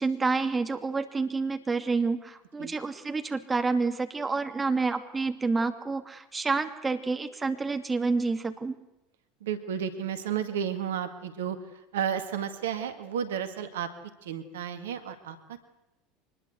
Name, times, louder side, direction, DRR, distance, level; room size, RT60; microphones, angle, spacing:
voice 1, 0.0-8.7, right 4 dB, 20° right, 7 dB, 2.6 m, -28 dB
voice 2, 9.4-13.9 14.2-15.7, right 8 dB, 75° right, 9 dB, 1.9 m, -32 dB
24.0 x 20.5 x 8.1 m, 0.93 s
hypercardioid pair, 75°, 0 cm